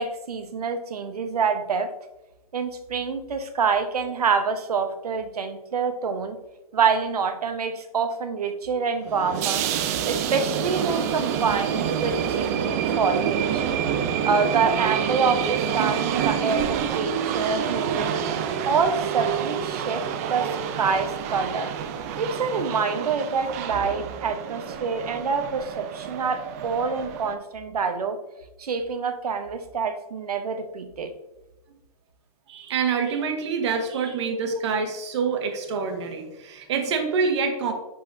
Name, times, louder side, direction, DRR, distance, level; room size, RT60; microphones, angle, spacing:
voice 1, 0.0-1.9 2.5-6.4 6.7-9.7 10.1-13.6 14.2-21.7 22.2-28.2 28.6-31.1, right 5 dB, 90° right, 8 dB, 1.0 m, -26 dB
sound 1, 9.0-27.4, right 8 dB, 25° right, 0.4 m, -27 dB
voice 2, 32.5-37.7, right 5 dB, 50° right, 5 dB, 1.3 m, -26 dB
11.0 x 4.0 x 2.7 m, 1.0 s
hypercardioid pair, 155°, 19 cm